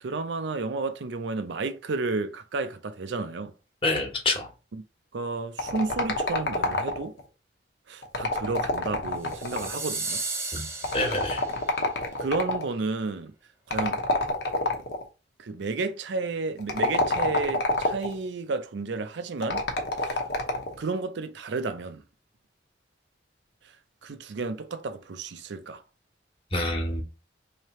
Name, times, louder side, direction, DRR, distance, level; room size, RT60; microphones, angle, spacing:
voice 1, 0.0-3.5 4.7-4.8 5.1-7.1 7.9-10.2 12.2-13.3 13.7-14.0 15.4-19.6 20.0-20.2 20.8-22.0 24.0-25.8, right 3 dB, 75° right, 0.5 m, -32 dB
voice 2, 3.8-4.5 10.5-10.7 10.9-11.4 26.5-27.0, left 2 dB, 30° left, 1.2 m, -27 dB
sound 1, 5.6-7.2 8.0-9.9 10.8-12.7 13.7-15.0 16.6-18.2 19.4-20.8, left 2 dB, 65° left, 1.0 m, -27 dB
sound 2, 9.3-11.7, right 3 dB, 15° right, 0.6 m, -34 dB
3.2 x 2.8 x 4.2 m
head